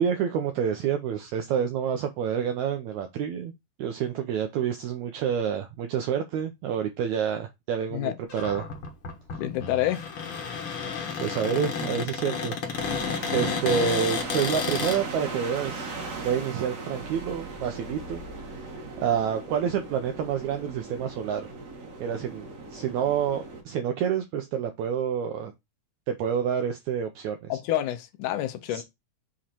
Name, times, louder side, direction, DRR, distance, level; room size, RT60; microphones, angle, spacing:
voice 1, 0.0-3.5 3.8-8.7 11.2-12.6 13.3-15.9 16.2-21.5 22.0-25.5 26.1-27.6 28.7-28.8, right 8 dB, 75° right, 1.9 m, -28 dB
Cupboard open or close, 8.3-15.0, left 6 dB, 55° left, 1.6 m, -31 dB
voice 2, 9.4-10.0 27.5-28.8, left 13 dB, 80° left, 2.1 m, -28 dB
sound 1, 12.7-23.6, right 3 dB, 60° right, 3.3 m, -38 dB
7.3 x 3.2 x 4.3 m
omnidirectional pair, 3.8 m